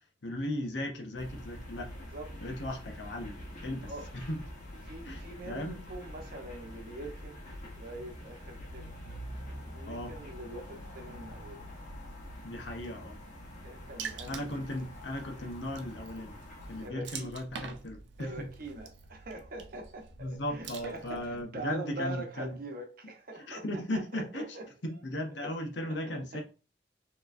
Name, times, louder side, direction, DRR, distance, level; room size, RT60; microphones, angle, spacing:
voice 1, 0.2-1.9 2.4-3.4 3.6-4.4 5.0-5.8 9.9-10.1 12.4-13.2 14.3-16.4 16.7-18.5 20.2-22.6 23.5-24.4 24.8-26.4, left 1 dB, 75° left, 0.9 m, -37 dB
sound 1, 1.2-16.9, equal, 45° left, 1.3 m, -45 dB
voice 2, 4.8-7.4 7.7-8.9 9.6-11.6 13.6-14.7 16.8-17.3 18.2-24.7 25.4-25.5 25.8-26.4, right 2 dB, 55° right, 0.9 m, -43 dB
Water / Splash splatter, 14.0-21.4, right 6 dB, 75° right, 0.5 m, -46 dB
4.6 x 3.0 x 2.5 m
head